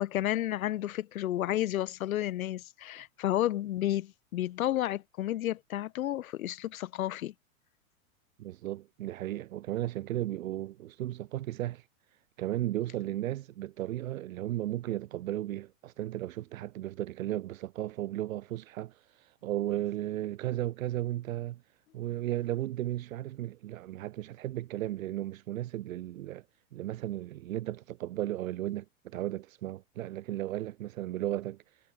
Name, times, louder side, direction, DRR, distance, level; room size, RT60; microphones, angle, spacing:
voice 1, 0.0-7.3, left 13 dB, 75° left, 2.4 m, -31 dB
voice 2, 8.4-11.8 12.4-21.6 21.9-26.4 26.7-31.6, right 14 dB, 70° right, 4.4 m, -35 dB
supercardioid pair, 145°, 41 cm